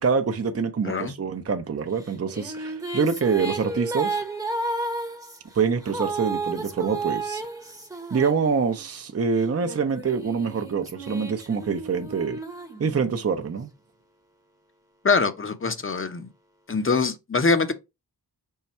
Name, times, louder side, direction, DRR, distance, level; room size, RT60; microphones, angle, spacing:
voice 1, 0.0-4.2 5.5-7.4 8.1-12.4 12.8-13.7, right 5 dB, 35° right, 0.7 m, -25 dB
voice 2, 0.8-1.2 15.0-16.3 16.7-17.7, left 4 dB, 30° left, 0.8 m, -23 dB
sound 1, 2.0-9.0 9.6-13.4, right 3 dB, 10° right, 0.9 m, -33 dB
5.6 x 2.3 x 4.2 m
cardioid pair, 50°, 40 cm